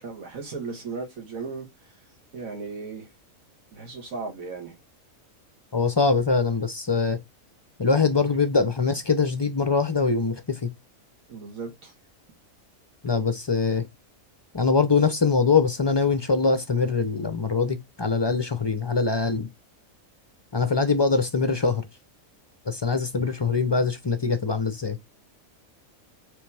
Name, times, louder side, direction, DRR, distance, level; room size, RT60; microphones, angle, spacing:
voice 1, 0.0-1.7 2.3-3.1 3.7-4.8 11.3-11.9 23.3-23.4, right 4 dB, 90° right, 1.8 m, -36 dB
voice 2, 5.7-7.2 7.8-10.7 13.0-13.9 14.5-19.5 20.5-21.9 22.7-25.0, left 4 dB, 45° left, 0.3 m, -23 dB
5.1 x 3.1 x 3.3 m
omnidirectional pair, 1.4 m